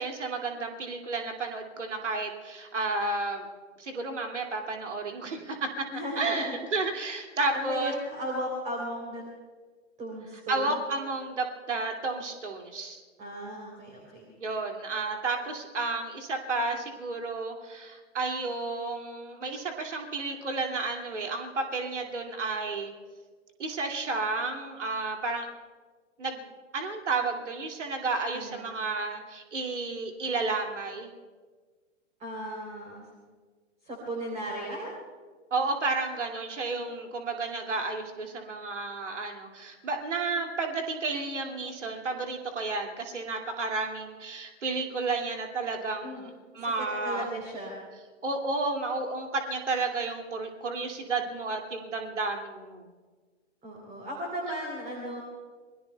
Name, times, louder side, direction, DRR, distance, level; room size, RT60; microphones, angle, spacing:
voice 1, 0.0-3.5 3.8-5.8 6.2-7.9 10.5-13.0 14.4-22.9 23.6-25.5 26.2-26.5 26.7-31.1 35.5-46.3 46.5-47.3 48.2-52.9, right 3 dB, 70° right, 3 dB, 2.5 m, -32 dB
voice 2, 5.9-6.6 7.5-9.2 10.0-10.8 13.2-14.3 28.3-28.7 32.2-33.1 33.8-34.9 46.0-46.2 46.5-46.6 47.0-47.8 53.6-55.2, equal, 20° right, -1 dB, 3.5 m, -36 dB
27.5 x 22.0 x 2.3 m, 1.5 s
figure-of-eight pair, 110°, 37 cm